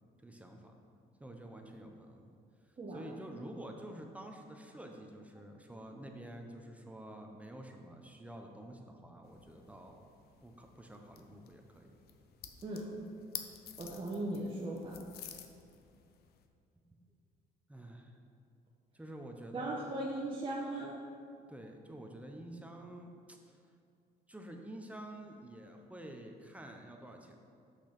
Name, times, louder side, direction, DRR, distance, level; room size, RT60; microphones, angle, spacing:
voice 1, 0.2-0.7 1.2-2.4 2.7-10.0 10.4-12.0 16.9-17.0 17.7-18.2 18.9-19.8 21.5-23.6 24.3-27.4, right 1 dB, 10° right, 3 dB, 0.8 m, -49 dB
sound 1, 9.2-16.5, left 9 dB, 65° left, 0.7 m, -51 dB
voice 2, 13.8-15.0 19.5-21.0, right 1 dB, 30° right, -4 dB, 1.1 m, -38 dB
6.7 x 6.0 x 5.9 m, 2.4 s
cardioid pair, 110°, 17 cm